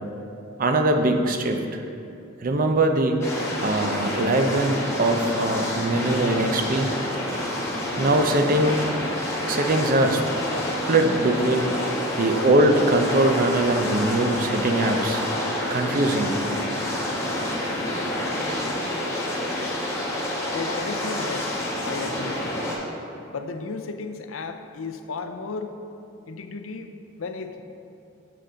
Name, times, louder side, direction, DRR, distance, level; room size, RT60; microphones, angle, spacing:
voice 1, 0.6-1.8 2.4-3.2 3.6-6.9 8.0-8.8 9.5-10.2 10.9-11.7 12.2-15.2 15.7-16.3, right 2 dB, 45° right, 5 dB, 0.6 m, -22 dB
sound 1, 3.2-22.8, left 1 dB, 15° left, 1.2 m, -28 dB
voice 2, 20.5-22.4 23.3-25.8 26.3-27.6, left 4 dB, 85° left, 7 dB, 0.5 m, -34 dB
7.6 x 6.7 x 3.8 m, 2.7 s
head